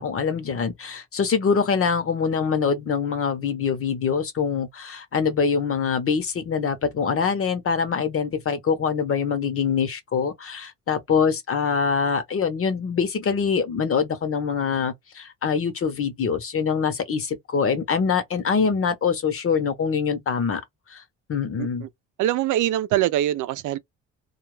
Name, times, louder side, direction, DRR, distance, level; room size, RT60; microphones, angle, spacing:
voice 1, 0.0-20.6 20.9-21.0 21.3-21.8, left 6 dB, 50° left, 0.9 m, -24 dB
voice 2, 21.6-21.9 22.2-23.8, right 13 dB, 80° right, 0.5 m, -23 dB
2.4 x 2.2 x 3.1 m
cardioid pair, 90°, 30 cm